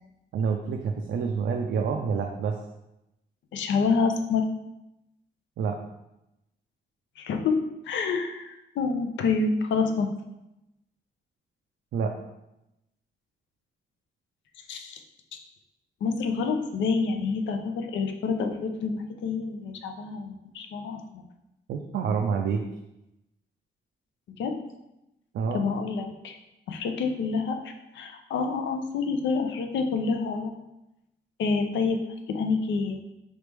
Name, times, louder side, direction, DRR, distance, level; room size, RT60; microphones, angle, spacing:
voice 1, 0.3-2.6 5.6-5.8 11.9-12.2 21.7-22.6 25.3-25.7, right 6 dB, 80° right, 3 dB, 0.4 m, -27 dB
voice 2, 3.5-4.4 7.2-7.5 7.9-10.1 14.7-15.0 16.0-21.2 24.4-24.5 25.5-26.4 26.7-30.5 31.4-32.0 32.3-33.0, left 4 dB, 90° left, 5 dB, 0.5 m, -27 dB
4.1 x 3.2 x 3.3 m, 0.91 s
cardioid pair, 80°, 19 cm